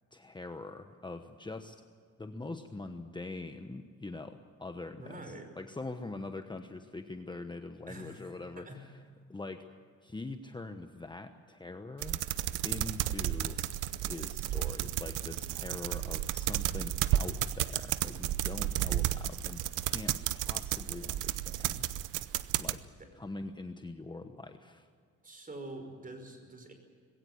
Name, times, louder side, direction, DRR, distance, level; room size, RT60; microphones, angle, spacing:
voice 1, 0.1-1.8 2.2-5.2 5.6-8.7 9.3-9.7 10.0-12.2 12.6-13.6 14.0-21.9 22.6-22.8 23.1-24.9, left 2 dB, 15° left, 7 dB, 1.1 m, -43 dB
voice 2, 5.0-5.5 7.9-8.2 8.6-8.8 23.0-23.1 25.2-26.7, right 1 dB, 30° right, 5 dB, 5.3 m, -45 dB
sound 1, 12.0-22.8, right 13 dB, 90° right, 0.8 m, -33 dB
20.5 x 17.0 x 9.6 m, 2.1 s
cardioid pair, 90°, 30 cm